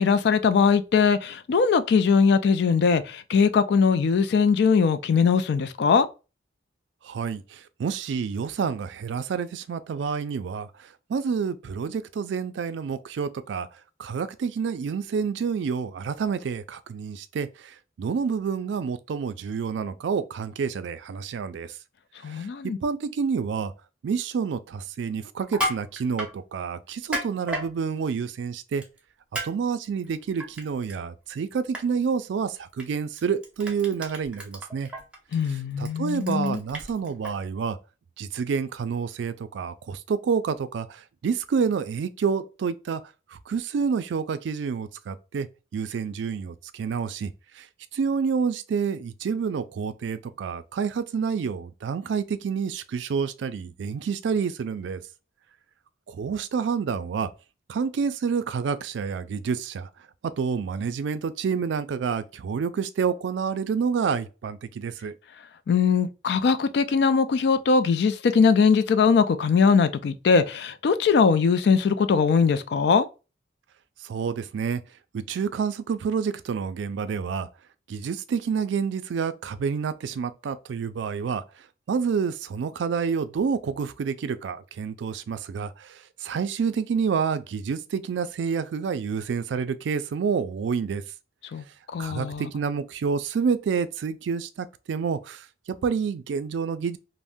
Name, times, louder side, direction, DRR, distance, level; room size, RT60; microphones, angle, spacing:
voice 1, 0.0-6.1 22.2-22.8 35.3-36.6 65.7-73.1 91.5-91.6 91.9-92.5, left 5 dB, 65° left, 0.3 m, -21 dB
voice 2, 7.0-10.7 11.1-13.7 14.0-21.8 22.3-23.7 24.0-28.8 29.4-34.9 35.5-37.8 38.2-43.0 43.3-45.5 45.7-47.7 47.9-55.0 56.1-57.3 57.7-59.9 60.2-65.1 74.0-74.8 75.1-77.5 77.9-81.4 81.9-91.0 92.0-95.5 95.8-97.0, right 6 dB, 75° right, 0.3 m, -28 dB
Crushing, 25.4-26.3 26.9-27.7 28.8-29.0 29.3-29.5 29.8-30.9 31.3-31.5 31.7-31.8 32.8-32.9 33.2-37.3, equal, 5° right, 0.6 m, -32 dB
2.6 x 2.1 x 3.4 m
head